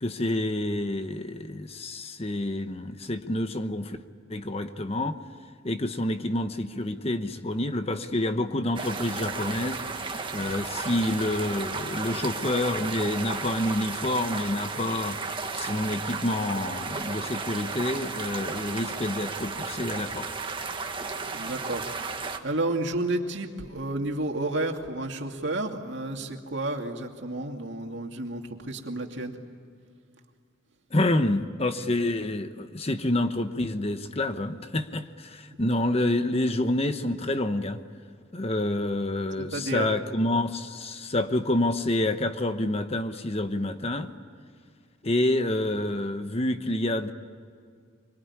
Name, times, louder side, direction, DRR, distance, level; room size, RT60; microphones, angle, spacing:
voice 1, 0.0-4.0 4.3-5.1 5.6-9.8 10.3-15.2 15.5-20.3 30.9-37.8 38.3-44.1 45.0-47.1, left 1 dB, 30° left, 9 dB, 1.1 m, -28 dB
sound 1, 8.8-22.4, right 4 dB, 25° right, 1.6 m, -34 dB
voice 2, 21.2-29.4 39.5-39.9, right 2 dB, 60° right, 3 dB, 2.5 m, -31 dB
25.0 x 23.5 x 9.8 m, 2.2 s
head